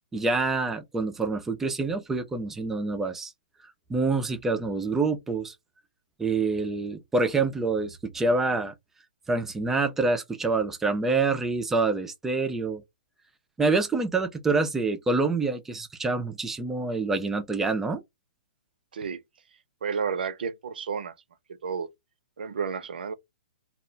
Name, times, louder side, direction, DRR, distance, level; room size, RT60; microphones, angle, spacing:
voice 1, 0.1-3.3 3.9-5.6 6.2-8.7 9.3-12.8 13.6-18.0, right 3 dB, 5° right, 0.3 m, -26 dB
voice 2, 19.8-21.1 21.6-21.9 22.4-23.1, right 6 dB, 75° right, 0.6 m, -31 dB
2.3 x 2.1 x 3.8 m
hypercardioid pair, 155°, 5 cm